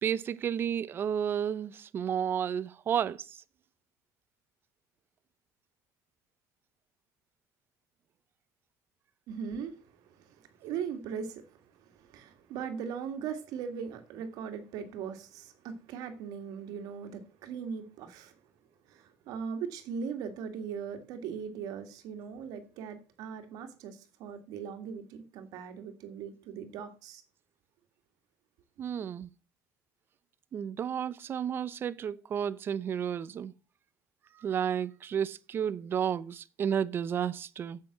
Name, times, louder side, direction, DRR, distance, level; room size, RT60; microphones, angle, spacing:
voice 1, 0.0-3.4 28.8-29.3 30.5-33.5 34.4-37.8, right 8 dB, 35° right, 0.6 m, -32 dB
voice 2, 9.3-18.3 18.9-27.2, right 7 dB, 65° right, 2.0 m, -39 dB
7.7 x 7.7 x 7.3 m
cardioid pair, 150°, 7 cm